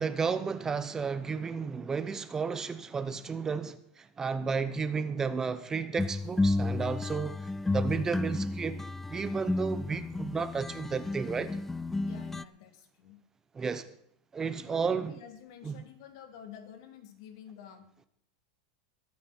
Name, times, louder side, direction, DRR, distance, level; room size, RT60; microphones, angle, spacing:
voice 1, 0.0-7.5 7.7-8.8 9.1-11.5 13.5-13.9 14.3-15.2 15.6-15.8, right 5 dB, 15° right, 0.8 m, -32 dB
sound 1, 6.0-12.4, left 2 dB, 5° left, 0.5 m, -32 dB
voice 2, 12.0-13.2 14.5-17.9, left 8 dB, 65° left, 3.1 m, -49 dB
21.5 x 9.3 x 4.4 m
supercardioid pair, 135°, 3 cm